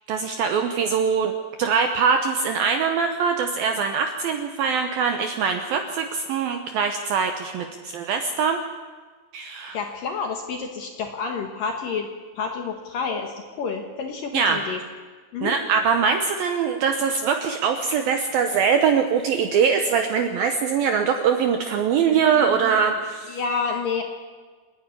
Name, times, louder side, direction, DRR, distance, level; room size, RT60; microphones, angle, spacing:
voice 1, 0.1-8.6 9.3-9.8 14.3-14.6 15.4-23.4, right 6 dB, 85° right, 6 dB, 2.0 m, -22 dB
voice 2, 9.7-12.1 12.4-14.8 15.3-15.5 22.1-22.7 23.3-24.0, left 5 dB, 65° left, 3 dB, 2.3 m, -29 dB
27.5 x 10.0 x 9.8 m, 1.5 s
omnidirectional pair, 5.6 m